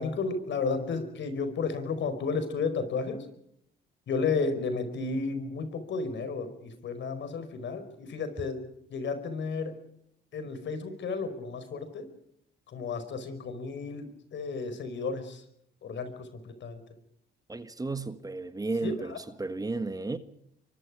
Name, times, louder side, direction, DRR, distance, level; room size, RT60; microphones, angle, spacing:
voice 1, 0.0-3.2 4.1-8.6 8.9-9.7 10.3-12.1 12.7-15.4 15.8-16.8 18.8-19.2, left 4 dB, 65° left, 4.9 m, -32 dB
voice 2, 17.5-20.2, right 3 dB, 20° right, 1.6 m, -33 dB
27.5 x 23.5 x 4.9 m
cardioid pair, 90°, 20 cm